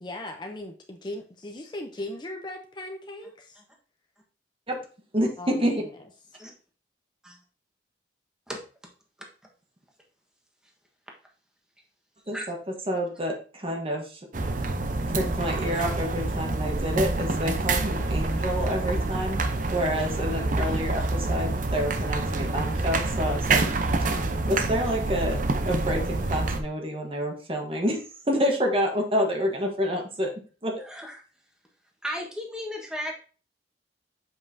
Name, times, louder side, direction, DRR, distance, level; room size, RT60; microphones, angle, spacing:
voice 1, 0.0-3.6 5.4-6.0, left 1 dB, 25° left, 4 dB, 0.6 m, -38 dB
voice 2, 5.1-5.8 12.3-12.6 12.9-14.2 15.1-19.4 19.7-23.6 24.5-28.0 28.3-30.3 30.6-30.8, equal, 30° right, 2 dB, 1.3 m, -28 dB
sound 1, 14.3-26.6, right 2 dB, 45° right, 0.7 m, -27 dB
voice 3, 30.8-31.2 32.0-33.1, equal, 5° right, 0 dB, 1.3 m, -35 dB
7.3 x 5.4 x 2.7 m, 0.38 s
head